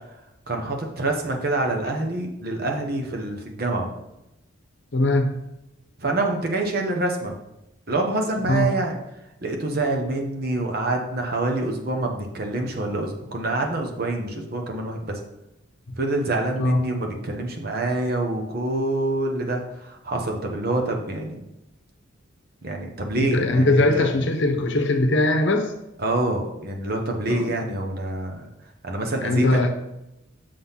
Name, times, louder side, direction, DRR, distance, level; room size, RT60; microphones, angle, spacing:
voice 1, 0.5-3.9 6.0-7.4 7.9-9.0 9.4-15.2 16.0-21.4 22.6-24.1 26.0-28.5 28.8-29.6, right 2 dB, 50° right, 2 dB, 1.0 m, -26 dB
voice 2, 4.9-5.4 8.5-8.7 16.6-16.9 23.2-25.7 27.3-27.5 29.2-29.7, left 2 dB, 60° left, 5 dB, 0.8 m, -20 dB
6.7 x 3.9 x 5.7 m, 0.89 s
head